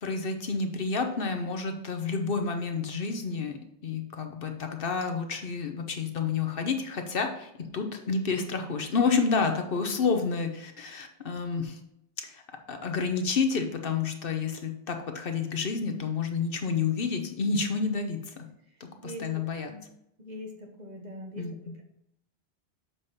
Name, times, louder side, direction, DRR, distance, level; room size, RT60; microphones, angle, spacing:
voice 1, 0.0-11.8 12.2-12.4 12.7-18.5 18.8-19.7 21.4-21.8, left 5 dB, 60° left, 5 dB, 1.0 m, -30 dB
voice 2, 18.7-19.9 20.2-21.8, equal, 45° right, 2 dB, 1.3 m, -43 dB
7.2 x 5.1 x 4.1 m, 0.79 s
omnidirectional pair, 1.1 m